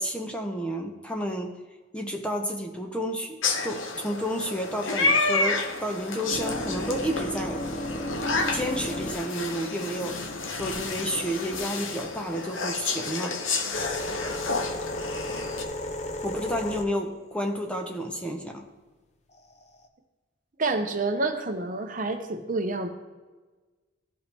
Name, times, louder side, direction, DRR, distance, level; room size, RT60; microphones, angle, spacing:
voice 1, 0.0-1.6 1.9-7.6 8.5-10.2 10.5-13.4 16.2-18.7, equal, 5° left, 3 dB, 0.7 m, -31 dB
sound 1, 3.4-15.6, left 3 dB, 75° left, 1.0 m, -30 dB
sound 2, 5.7-11.8 12.6-18.4 19.3-19.9, left 1 dB, 35° left, 0.7 m, -35 dB
voice 2, 20.6-22.9, right 3 dB, 40° right, 6 dB, 0.8 m, -28 dB
14.5 x 5.5 x 3.4 m, 1.3 s
head